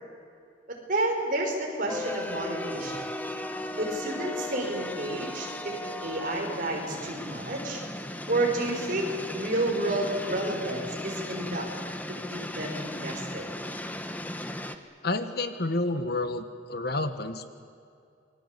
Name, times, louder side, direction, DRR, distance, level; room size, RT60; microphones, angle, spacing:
voice 1, 0.7-3.0 3.8-7.8 8.3-9.1 9.3-11.7 12.1-13.4, right 2 dB, 45° right, 1 dB, 5.5 m, -30 dB
sound 1, 1.9-14.8, left 1 dB, 10° left, 1.1 m, -36 dB
voice 2, 15.0-17.4, left 2 dB, 55° left, 9 dB, 1.5 m, -29 dB
28.0 x 21.5 x 8.4 m, 2.5 s
head